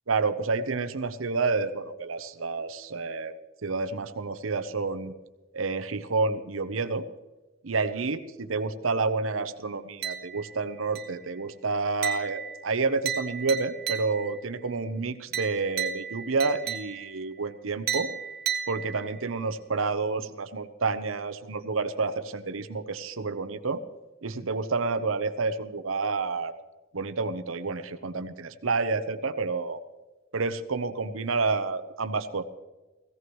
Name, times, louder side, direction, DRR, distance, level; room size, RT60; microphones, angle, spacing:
voice 1, 0.1-3.3 3.6-5.1 5.5-7.1 7.6-18.1 18.7-23.8 24.2-26.5 26.9-29.8 30.3-32.4, right 4 dB, 80° right, 10 dB, 0.9 m, -29 dB
sound 1, 10.0-10.6 10.9-11.4 12.0-14.4 15.3-17.2 17.9-19.3, right 8 dB, 50° right, 0.9 m, -34 dB
17.5 x 16.5 x 3.1 m, 1.2 s
head